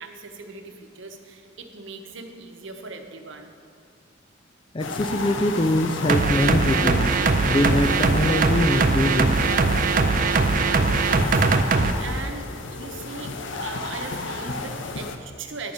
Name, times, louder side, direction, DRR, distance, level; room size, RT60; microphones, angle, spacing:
voice 1, 0.0-3.5 11.0-11.4 12.0-13.3 13.6-15.7, right 4 dB, 75° right, 5 dB, 0.9 m, -39 dB
voice 2, 4.7-9.4, left 1 dB, 25° left, 8 dB, 0.4 m, -23 dB
sound 1, 4.8-15.2, left 3 dB, 75° left, 0.7 m, -32 dB
sound 2, 6.1-11.9, right 4 dB, 45° right, 0.5 m, -21 dB
10.5 x 5.1 x 7.1 m, 2.2 s
head